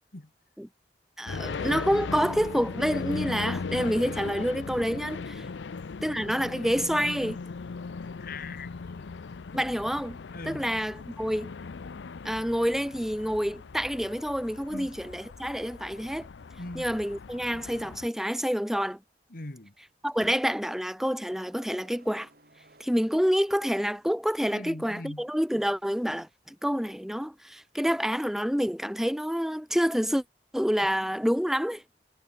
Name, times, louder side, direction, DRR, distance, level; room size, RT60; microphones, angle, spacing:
voice 1, 1.2-5.4 6.0-7.4 9.5-10.2 10.4-11.5 12.2-16.3 16.7-19.0 20.0-22.3 22.8-30.2 30.5-31.8, equal, ahead, 1.3 m, -28 dB
sound 1, 1.3-18.1, left 4 dB, 85° left, 0.6 m, -38 dB
voice 2, 8.2-9.1 10.3-10.7 14.7-14.9 16.6-16.9 19.3-19.7 20.2-20.3 24.5-25.3, left 2 dB, 55° left, 1.7 m, -41 dB
sound 2, 21.3-24.0, right 2 dB, 55° right, 7.2 m, -60 dB
head